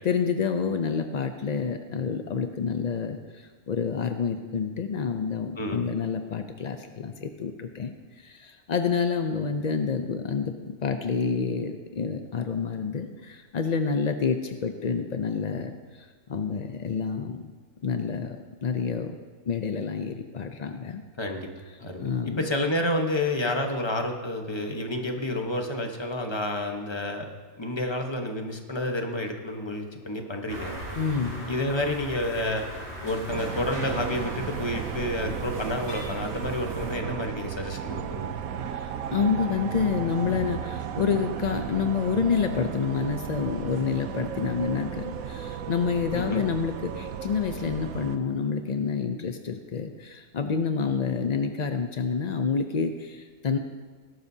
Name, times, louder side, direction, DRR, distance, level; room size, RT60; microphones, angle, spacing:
voice 1, 0.0-17.5 17.8-19.2 19.5-21.0 22.0-22.4 31.0-31.5 38.7-53.6, left 6 dB, 70° left, 6 dB, 0.4 m, -28 dB
voice 2, 21.2-21.5 21.8-27.3 27.6-30.7 31.5-32.6 33.0-38.3 46.1-46.4, left 1 dB, 20° left, 3 dB, 1.0 m, -29 dB
sound 1, 30.5-37.0, equal, 35° right, 2.9 m, -39 dB
sound 2, 33.3-48.2, right 8 dB, 75° right, 1.1 m, -35 dB
19.0 x 12.0 x 2.8 m, 1.4 s
omnidirectional pair, 1.5 m